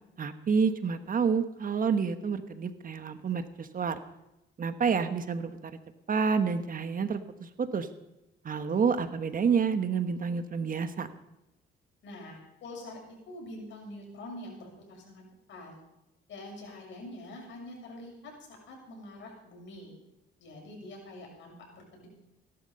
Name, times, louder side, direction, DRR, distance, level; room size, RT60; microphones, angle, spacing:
voice 1, 0.2-4.0 4.6-5.7 6.1-7.9 8.4-11.1, right 6 dB, 45° right, 9 dB, 1.3 m, -29 dB
voice 2, 12.0-13.0 13.3-15.7 16.3-20.0 20.4-22.1, left 1 dB, 70° left, 0 dB, 7.0 m, -45 dB
17.5 x 12.0 x 5.5 m, 0.93 s
cardioid pair, 90°, 20 cm